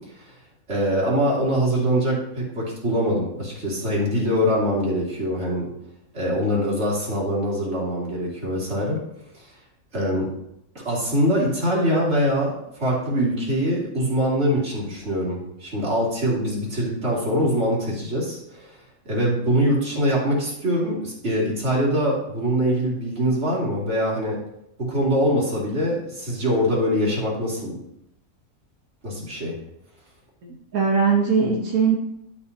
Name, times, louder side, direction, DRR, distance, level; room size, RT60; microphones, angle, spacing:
voice 1, 0.7-5.7 6.1-9.0 9.3-9.5 9.9-10.3 10.8-18.7 19.0-24.4 24.8-27.8 29.0-29.5, equal, 50° right, -4 dB, 2.9 m, -23 dB
voice 2, 30.4-32.0, right 5 dB, 85° right, -2 dB, 1.6 m, -20 dB
11.5 x 7.4 x 2.8 m, 0.79 s
omnidirectional pair, 1.4 m